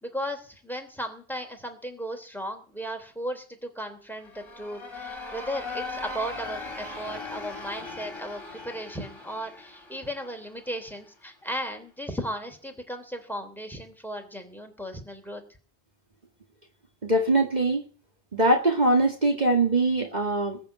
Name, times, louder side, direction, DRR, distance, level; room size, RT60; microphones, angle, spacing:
voice 1, 0.0-15.4, equal, ahead, 5 dB, 3.2 m, -36 dB
sound 1, 4.1-10.9, left 3 dB, 25° left, 3.6 m, -39 dB
voice 2, 17.0-17.9 18.3-20.6, right 2 dB, 40° right, 2 dB, 2.1 m, -22 dB
21.0 x 7.3 x 9.0 m, 0.41 s
omnidirectional pair, 1.1 m